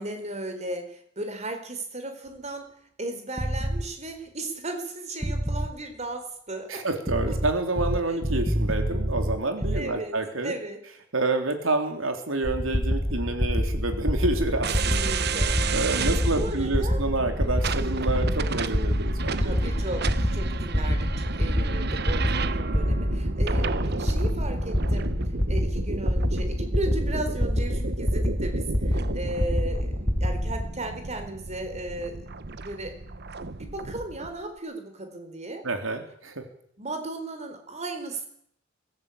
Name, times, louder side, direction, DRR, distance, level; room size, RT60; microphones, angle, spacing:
voice 1, 0.0-2.7 3.0-6.8 9.7-10.2 10.4-10.8 14.8-15.5 16.1-17.0 19.4-25.2 25.5-32.2 32.6-33.0 33.6-35.6 36.8-38.3, right 2 dB, 35° right, 6 dB, 4.4 m, -36 dB
sound 1, 3.4-3.8 5.2-5.7 7.1-9.8, equal, 15° right, 1.3 m, -27 dB
voice 2, 6.7-10.5 11.1-15.1 15.7-19.5 35.6-36.4, right 2 dB, 85° right, 6 dB, 3.6 m, -28 dB
sound 2, 12.4-30.7, equal, 10° left, 0.9 m, -27 dB
sound 3, 14.6-34.3, right 4 dB, 55° right, 1.0 m, -33 dB
23.5 x 14.5 x 8.6 m, 0.68 s
head